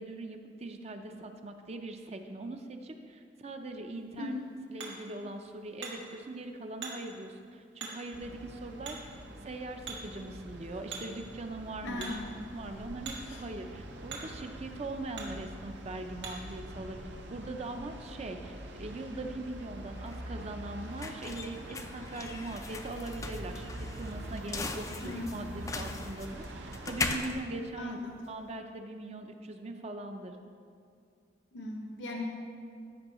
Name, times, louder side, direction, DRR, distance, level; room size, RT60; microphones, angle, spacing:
voice 1, 0.0-4.4 4.7-9.0 9.4-12.2 12.5-17.0 17.3-28.0 28.3-30.4, right 2 dB, 35° right, 6 dB, 0.5 m, -41 dB
Hammer, 3.9-16.6, right 4 dB, 90° right, 1.7 m, -48 dB
sound 1, 8.1-27.3, right 1 dB, 70° right, 0.7 m, -45 dB
voice 2, 11.8-12.3 13.3-13.4 25.0-25.2 27.8-28.3 31.5-32.3, left 2 dB, 75° left, 0 dB, 0.8 m, -38 dB
sound 2, 19.5-28.5, left 3 dB, 20° left, 0.3 m, -40 dB
14.0 x 5.3 x 3.0 m, 2.3 s
head